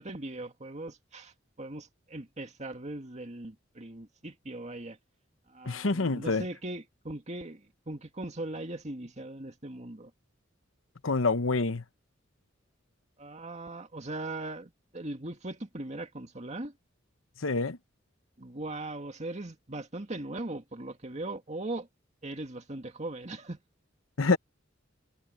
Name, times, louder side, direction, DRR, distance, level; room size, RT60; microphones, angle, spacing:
voice 1, 0.0-5.0 5.5-10.1 13.2-16.7 18.4-21.9 22.2-23.6, right 2 dB, 35° right, 2.1 m, -39 dB
voice 2, 5.6-6.4 11.0-11.8 17.4-17.8 24.2-24.4, left 3 dB, 85° left, 1.0 m, -26 dB
head